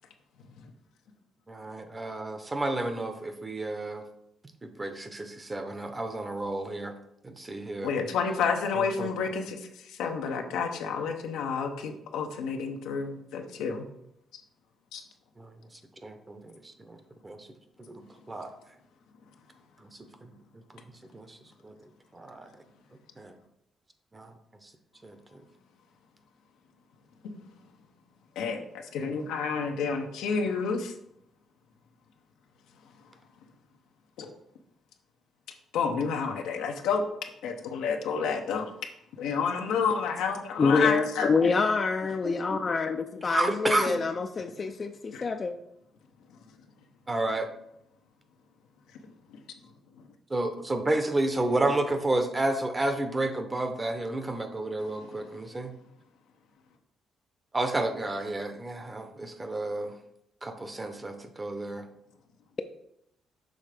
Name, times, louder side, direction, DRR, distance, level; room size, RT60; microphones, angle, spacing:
voice 1, 1.5-4.0 4.6-6.9 7.2-7.9 8.8-9.1 15.4-15.5 16.0-16.5 16.9-17.0 17.2-17.5 17.9-18.5 21.1-21.4 21.6-21.7 22.1-22.5 23.2-23.3 24.1-24.3 25.0-25.2 42.2-42.3 43.2-44.0 47.1-47.5 50.3-55.7 57.5-59.9 60.4-61.8, right 2 dB, 20° right, 8 dB, 0.8 m, -31 dB
voice 2, 7.8-13.9 14.9-15.0 28.4-30.9 34.2-34.3 35.7-37.1 37.4-38.7 39.2-41.3 45.1-45.3 49.3-49.4 54.8-55.1, left 5 dB, 90° left, 4 dB, 0.7 m, -30 dB
voice 3, 40.6-45.5, left 4 dB, 40° left, 6 dB, 0.4 m, -26 dB
6.4 x 3.3 x 4.9 m, 0.78 s
cardioid pair, 90°, 0 cm